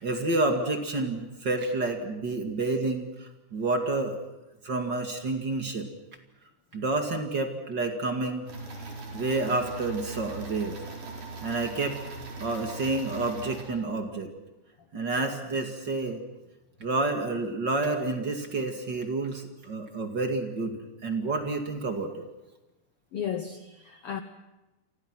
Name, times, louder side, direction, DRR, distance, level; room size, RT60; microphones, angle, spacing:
voice 1, 0.0-4.2 4.6-5.9 6.7-8.5 9.1-10.8 11.4-14.3 14.9-16.2 16.8-22.3, right 2 dB, 35° right, 2.4 m, -29 dB
sound 1, 8.5-13.6, right 3 dB, 70° right, 6.2 m, -40 dB
voice 2, 23.1-24.2, left 8 dB, 65° left, 1.5 m, -34 dB
30.0 x 25.0 x 6.1 m
omnidirectional pair, 3.8 m